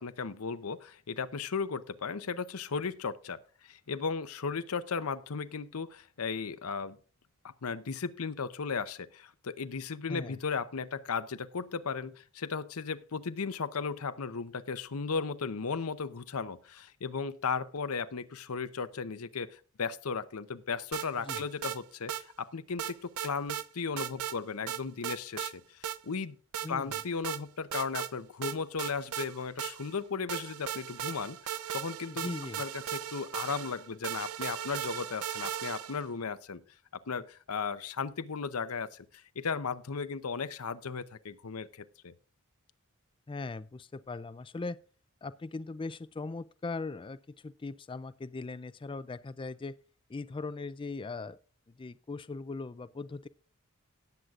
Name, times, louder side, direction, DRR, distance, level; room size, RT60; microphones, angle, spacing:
voice 1, 0.0-7.0 7.4-26.4 26.7-32.3 32.6-36.6 37.1-42.1, left 5 dB, 85° left, 0.7 m, -36 dB
sound 1, 20.9-21.8 22.1-22.2 22.8-23.7 24.0-24.4 24.7-25.5 25.8-26.0 26.5-27.4 27.7-28.1 28.4-30.0 30.3-36.1, right 10 dB, 85° right, 0.6 m, -37 dB
voice 2, 26.6-26.9 32.1-32.6 43.3-44.8 45.2-49.7 50.1-51.4 51.8-53.3, left 3 dB, 25° left, 0.4 m, -39 dB
18.0 x 8.0 x 2.5 m
head